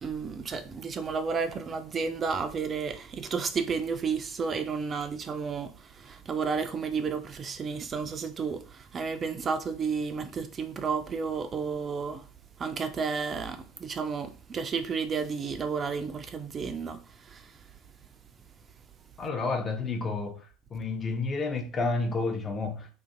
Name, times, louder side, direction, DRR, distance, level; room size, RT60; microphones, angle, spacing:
voice 1, 0.0-12.3 12.6-17.6, right 5 dB, 30° right, 0.3 m, -32 dB
voice 2, 19.2-22.9, left 3 dB, 30° left, 0.6 m, -30 dB
2.5 x 2.4 x 2.5 m
figure-of-eight pair, 70°, 0 cm